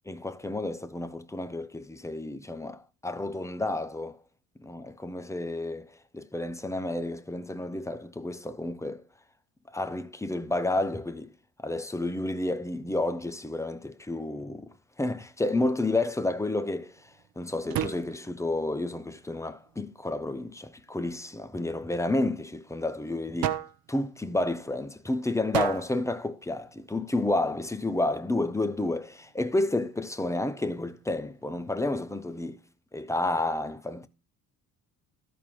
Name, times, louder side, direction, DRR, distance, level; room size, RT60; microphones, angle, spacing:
voice 1, 0.1-4.2 4.6-9.0 9.7-11.3 11.6-14.7 15.0-17.1 17.4-23.6 23.9-32.6 32.9-34.1, left 2 dB, 5° left, 0.7 m, -30 dB
sound 1, 15.7-32.6, right 11 dB, 50° right, 0.9 m, -41 dB
13.0 x 4.3 x 5.2 m
hypercardioid pair, 55°, 44 cm